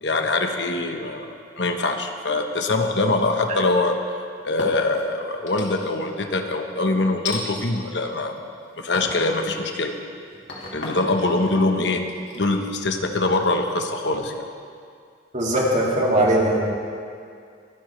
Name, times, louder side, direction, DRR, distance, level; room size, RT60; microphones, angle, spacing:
voice 1, 0.0-1.3 1.6-4.0 4.4-8.4 8.8-9.9 10.7-12.0 12.3-14.5, left 2 dB, 75° left, 4 dB, 1.1 m, -23 dB
sound 1, 3.1-3.8 4.4-5.0 5.5-6.1 7.3-7.4 8.1-8.5 8.9-9.3 9.8-13.5, left 3 dB, 90° left, 2.6 m, -36 dB
voice 2, 15.3-16.6, right 1 dB, 45° right, -3 dB, 2.5 m, -20 dB
24.0 x 11.5 x 3.3 m, 2.3 s
head